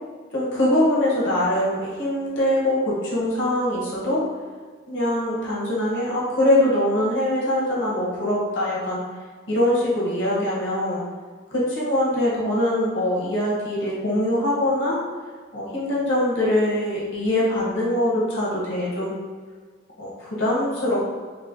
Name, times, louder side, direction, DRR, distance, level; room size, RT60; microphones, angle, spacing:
voice 1, 0.3-4.2 4.9-9.0 9.5-11.0 11.5-15.0 15.5-19.1 20.0-21.2, left 1 dB, 80° left, -6 dB, 1.1 m, -23 dB
6.1 x 2.1 x 2.6 m, 1.5 s
head